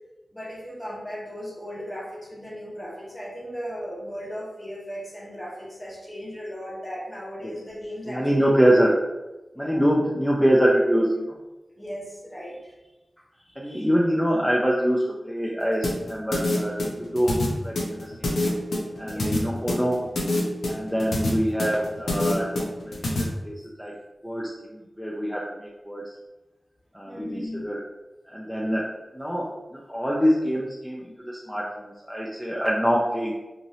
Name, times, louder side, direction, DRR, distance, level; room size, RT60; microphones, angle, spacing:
voice 1, 0.3-8.5 9.5-9.8 11.8-12.7 13.4-13.9 19.0-19.4 27.1-27.6, equal, 25° left, -3 dB, 1.0 m, -37 dB
voice 2, 8.1-9.0 9.6-11.3 13.6-18.3 19.0-20.0 20.7-23.9 24.2-26.0 26.9-27.8 28.3-28.9 29.1-33.3, equal, 5° left, -4 dB, 0.5 m, -25 dB
sound 1, 15.8-23.2, left 2 dB, 90° left, 0.6 m, -26 dB
3.0 x 2.6 x 2.7 m, 1.1 s
cardioid pair, 40°, 0 cm